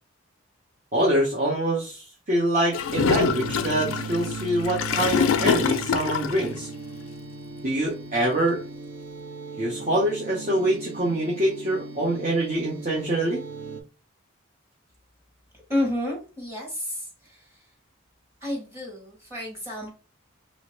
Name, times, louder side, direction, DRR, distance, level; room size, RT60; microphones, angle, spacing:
voice 1, 0.9-6.7 7.6-8.6 9.6-13.4, right 1 dB, 40° right, -5 dB, 0.8 m, -25 dB
Gurgling / Toilet flush, 2.7-6.5, left 7 dB, 80° left, 0.4 m, -25 dB
sound 1, 3.2-13.8, right 4 dB, 80° right, 0.6 m, -38 dB
voice 2, 15.7-17.7 18.4-19.9, left 1 dB, 10° right, -3 dB, 1.2 m, -30 dB
3.1 x 2.8 x 3.0 m, 0.32 s
head